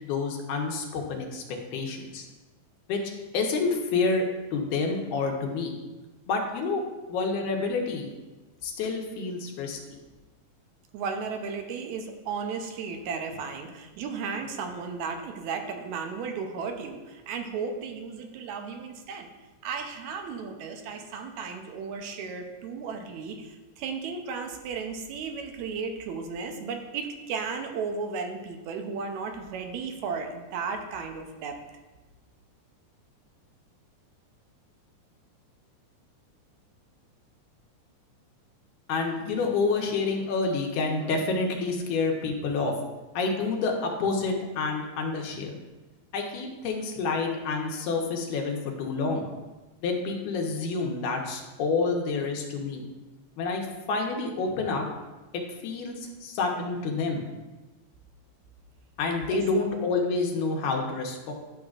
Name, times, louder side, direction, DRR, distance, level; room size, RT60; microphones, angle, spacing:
voice 1, 0.0-2.3 2.9-3.0 3.3-4.3 4.5-5.7 6.3-6.8 7.1-8.1 8.6-9.8 38.9-42.7 43.1-45.6 46.1-49.2 49.8-52.8 53.4-54.8 55.3-57.2 59.0-61.3, left 4 dB, 85° left, 1 dB, 2.4 m, -28 dB
voice 2, 10.9-19.3 19.6-31.6 59.3-59.4, right 5 dB, 80° right, 5 dB, 1.9 m, -34 dB
10.5 x 6.3 x 2.4 m, 1.2 s
omnidirectional pair, 3.5 m